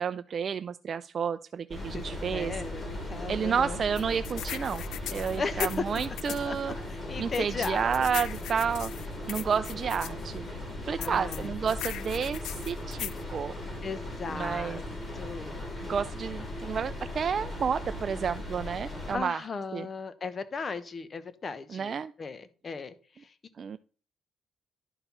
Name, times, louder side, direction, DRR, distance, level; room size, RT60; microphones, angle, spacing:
voice 1, 0.0-2.5 3.3-4.8 5.1-6.8 7.2-8.9 9.3-12.4 12.7-13.5 14.3-14.8 15.8-19.4 19.7-19.9 21.7-22.1 23.6-23.8, right 7 dB, 50° right, 12 dB, 0.3 m, -31 dB
sound 1, 1.7-19.2, left 1 dB, 25° left, 4.1 m, -38 dB
voice 2, 1.9-3.8 5.4-6.0 6.4-6.6 6.9-8.1 11.0-11.5 13.8-14.8 15.1-15.8 19.1-23.3, left 4 dB, 40° left, 13 dB, 1.0 m, -36 dB
sound 2, 4.0-6.5 7.3-10.1 11.0-13.2, left 13 dB, 85° left, 0.3 m, -38 dB
11.0 x 4.6 x 5.4 m, 0.40 s
cardioid pair, 90°, 0 cm